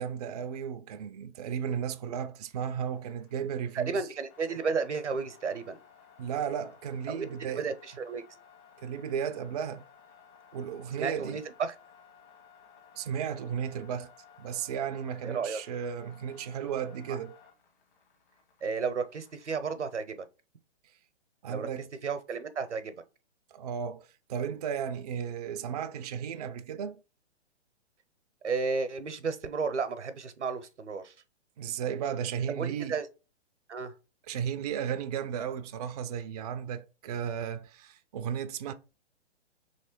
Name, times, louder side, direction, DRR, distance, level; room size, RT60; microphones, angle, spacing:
voice 1, 0.0-4.1 6.2-7.7 8.8-9.8 10.5-11.4 12.9-14.1 14.4-17.4 21.4-21.9 23.5-27.0 31.6-33.0 34.3-38.7, right 8 dB, 35° right, 0.4 m, -34 dB
sound 1, 2.4-20.0, left 7 dB, 45° left, 1.5 m, -58 dB
voice 2, 3.7-5.8 7.1-8.2 11.0-11.7 15.2-15.6 17.1-17.2 18.6-20.2 21.5-21.7 22.0-23.0 28.4-31.1 32.6-33.1 33.7-33.9, right 5 dB, 85° right, 0.8 m, -33 dB
3.2 x 3.2 x 4.4 m
figure-of-eight pair, 125°, 34 cm